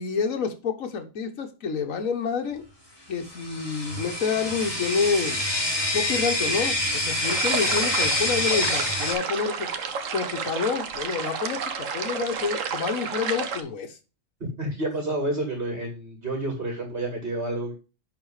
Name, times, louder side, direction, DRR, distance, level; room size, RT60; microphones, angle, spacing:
voice 1, 0.0-2.6 3.1-5.4 5.9-6.8 7.0-9.7 10.1-14.0, left 5 dB, 80° left, 5 dB, 1.6 m, -28 dB
sound 1, 3.2-9.1, left 1 dB, 15° left, 3.8 m, -26 dB
sound 2, 7.2-13.6, right 6 dB, 75° right, 1.3 m, -31 dB
voice 2, 14.6-17.7, right 2 dB, 45° right, 3 dB, 2.4 m, -29 dB
10.5 x 4.3 x 4.8 m, 0.31 s
omnidirectional pair, 1.4 m